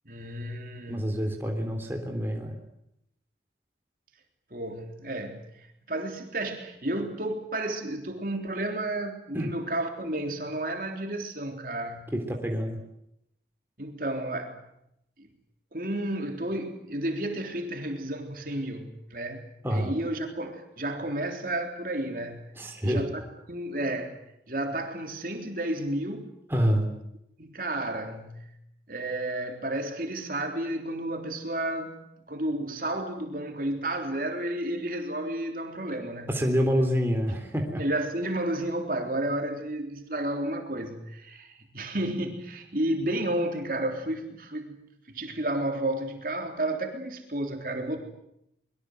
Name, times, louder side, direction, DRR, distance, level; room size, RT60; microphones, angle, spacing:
voice 1, 0.1-1.3 4.5-12.1 13.8-14.6 15.2-15.3 15.7-22.5 22.8-23.2 23.5-24.2 24.5-26.3 27.4-28.5 28.9-32.0 32.3-36.3 37.8-44.8 45.1-48.0, right 1 dB, 50° right, 3 dB, 3.6 m, -32 dB
voice 2, 0.9-2.6 9.3-9.5 12.1-12.8 19.6-19.9 22.5-23.0 26.5-26.9 36.3-37.8, equal, 15° right, 2 dB, 3.5 m, -27 dB
24.0 x 22.5 x 8.0 m, 0.80 s
head